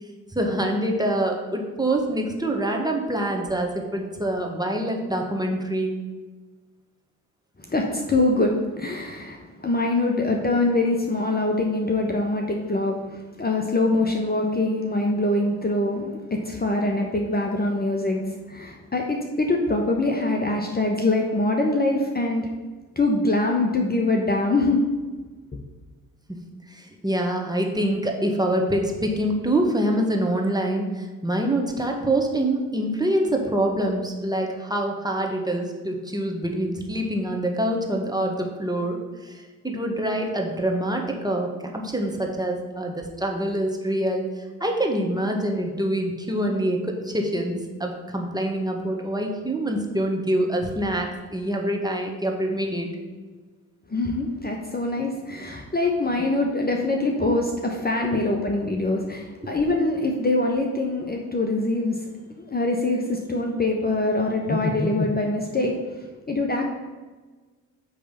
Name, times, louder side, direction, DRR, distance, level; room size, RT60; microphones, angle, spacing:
voice 1, 0.3-5.9 26.7-39.0 39.2-41.5 41.7-44.2 44.6-52.9 58.0-58.2 59.4-59.5, right 1 dB, 10° right, 1 dB, 1.4 m, -25 dB
voice 2, 7.6-22.5 23.0-24.8 53.9-62.0 62.4-65.8 66.3-66.7, left 2 dB, 25° left, 1 dB, 1.0 m, -24 dB
8.6 x 3.3 x 5.7 m, 1.3 s
hypercardioid pair, 40°, 41 cm